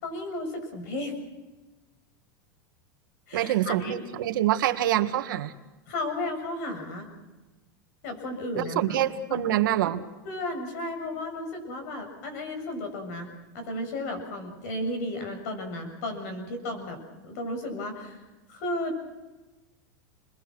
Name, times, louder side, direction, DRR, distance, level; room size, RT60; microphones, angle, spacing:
voice 1, 0.0-1.1 3.3-4.0 5.9-7.1 8.0-9.0 9.3-9.4 10.3-18.2 18.5-19.0, left 1 dB, 55° left, 6 dB, 7.1 m, -34 dB
voice 2, 3.3-5.5 8.6-10.0, right 12 dB, 80° right, 7 dB, 1.8 m, -25 dB
29.5 x 22.0 x 6.2 m, 1.1 s
supercardioid pair, 175°, 11 cm